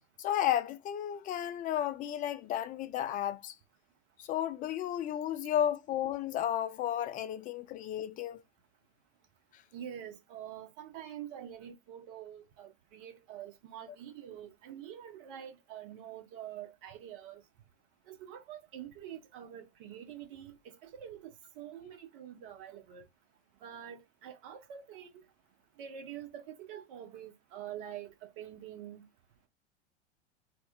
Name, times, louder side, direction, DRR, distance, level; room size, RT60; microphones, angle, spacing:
voice 1, 0.2-3.5 4.2-8.4, left 11 dB, 25° left, 0.4 m, -33 dB
voice 2, 9.7-17.4 18.1-23.0 23.6-25.1 25.8-29.1, right 10 dB, 55° right, 0.9 m, -46 dB
2.8 x 2.2 x 2.3 m
figure-of-eight pair, 85°, 33 cm